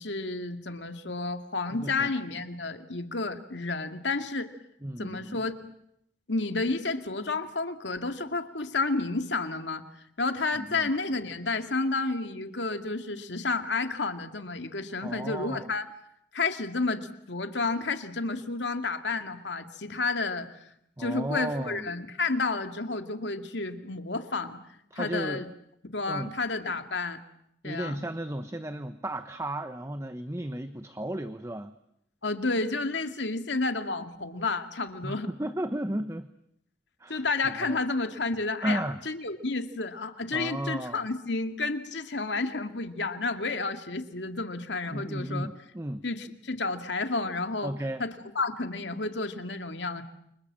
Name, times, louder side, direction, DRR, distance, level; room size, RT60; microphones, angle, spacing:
voice 1, 0.0-4.5 5.0-5.6 6.3-9.8 10.2-15.9 16.3-20.7 21.0-24.6 25.0-25.5 25.9-27.2 27.6-28.0 32.2-35.3 37.1-45.5 46.0-47.7 48.0-50.0, left 3 dB, 80° left, 7 dB, 2.3 m, -31 dB
voice 2, 1.7-2.1 4.8-5.4 10.5-10.9 15.0-15.7 21.0-21.9 24.9-25.4 26.1-26.3 27.6-31.7 35.0-36.3 37.0-37.3 37.6-37.8 38.6-39.0 40.3-41.0 44.9-46.0 47.6-48.0, right 1 dB, 15° right, 10 dB, 1.1 m, -34 dB
29.5 x 26.0 x 7.6 m, 0.76 s
head